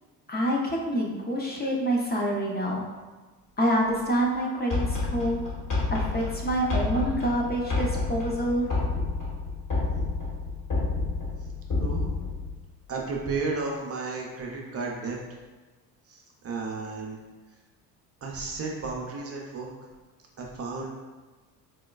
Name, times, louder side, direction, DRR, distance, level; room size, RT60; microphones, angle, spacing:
voice 1, 0.3-2.8 3.6-5.4 5.9-8.7, equal, 20° left, -2 dB, 0.5 m, -27 dB
sound 1, 4.7-12.5, left 3 dB, 40° left, 1.4 m, -29 dB
voice 2, 11.8-12.2 12.9-15.2 16.1-17.2 18.2-19.7 20.4-20.9, right 3 dB, 30° right, -1 dB, 0.5 m, -33 dB
4.1 x 2.2 x 2.2 m, 1.3 s
hypercardioid pair, 70°, 46 cm